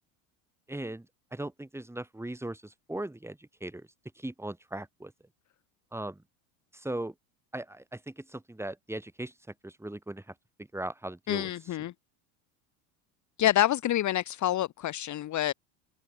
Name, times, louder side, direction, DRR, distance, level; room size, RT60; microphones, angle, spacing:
voice 1, 0.7-1.1 1.3-3.9 4.2-5.1 5.9-6.2 6.7-7.1 7.5-9.3 9.6-10.2 10.7-11.5, right 1 dB, 5° right, 5.7 m, -38 dB
voice 2, 11.3-11.9 13.4-15.5, left 13 dB, 40° left, 1.3 m, -27 dB
supercardioid pair, 100°, 43 cm